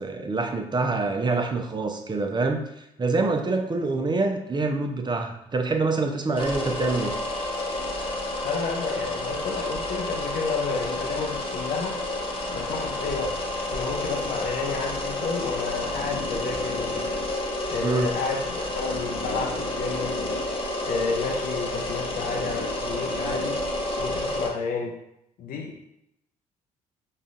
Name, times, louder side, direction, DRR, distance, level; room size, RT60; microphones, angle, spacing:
voice 1, 0.0-7.1 17.8-18.1, right 3 dB, 25° right, 5 dB, 0.6 m, -26 dB
sound 1, 6.4-24.5, left 1 dB, 30° left, 1.0 m, -30 dB
voice 2, 8.4-12.0 12.5-13.4 13.7-17.1 17.7-20.4 20.8-23.6 24.0-25.0 25.4-25.8, left 4 dB, 55° left, 2 dB, 0.5 m, -31 dB
6.3 x 2.4 x 2.4 m, 0.81 s
hypercardioid pair, 45°, 18 cm